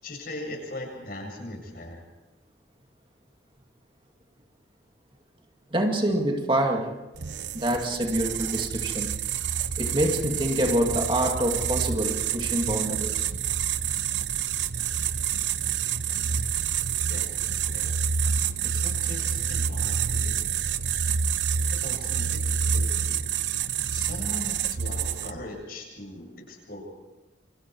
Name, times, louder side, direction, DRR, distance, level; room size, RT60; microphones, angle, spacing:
voice 1, 0.0-2.0 17.1-17.9 18.7-20.3 21.5-23.2 23.9-26.8, left 1 dB, 55° left, 1 dB, 7.6 m, -40 dB
voice 2, 5.7-7.0 7.5-9.1 9.8-13.3, right 1 dB, 30° right, 3 dB, 2.3 m, -26 dB
sound 1, 7.2-25.5, right 7 dB, 75° right, 0.8 m, -28 dB
28.5 x 25.0 x 4.7 m, 1.1 s
head